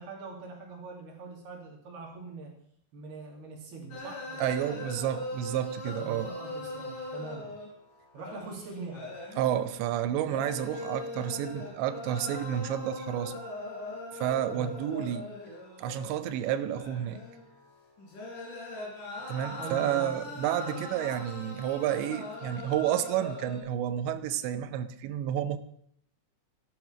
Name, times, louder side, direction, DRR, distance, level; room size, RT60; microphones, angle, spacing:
voice 1, 0.0-2.5 2.9-4.6 6.0-7.5 8.1-9.1 14.5-14.8 19.6-20.8, right 3 dB, 65° right, 0 dB, 4.8 m, -43 dB
sound 1, 3.9-23.6, left 2 dB, 50° left, 5.0 m, -41 dB
voice 2, 4.4-6.3 9.4-13.4 14.1-15.3 15.8-17.2 19.3-25.6, right 11 dB, 90° right, 11 dB, 3.1 m, -30 dB
14.0 x 11.5 x 6.0 m, 0.66 s
omnidirectional pair, 5.0 m